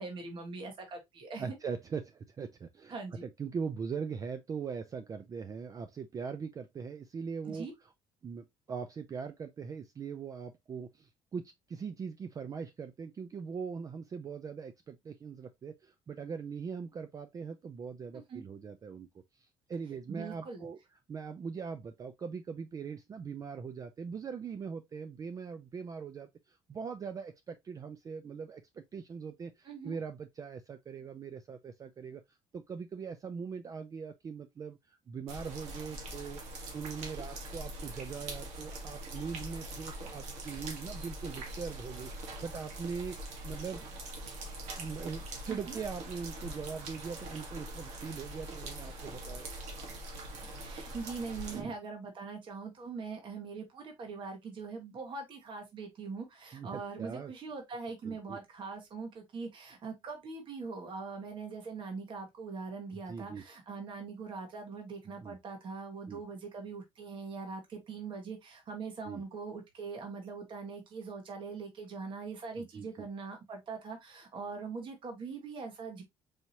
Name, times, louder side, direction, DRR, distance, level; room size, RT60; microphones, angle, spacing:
voice 1, 0.0-1.6 2.9-3.2 7.4-7.7 18.3-18.4 20.1-20.7 29.6-30.0 45.5-45.8 50.6-76.0, right 4 dB, 50° right, 1.4 m, -42 dB
voice 2, 1.4-7.7 8.2-19.1 19.3-20.8 21.1-32.2 32.5-43.8 44.8-49.5 51.5-51.7 56.5-57.3 58.0-58.4 63.1-63.4 65.2-65.3 66.1-66.2 69.0-69.2 72.6-73.1, right 6 dB, 30° right, 0.4 m, -41 dB
sound 1, 35.3-51.6, right 1 dB, 80° right, 1.4 m, -43 dB
4.8 x 2.8 x 2.8 m
cardioid pair, 120°, 11 cm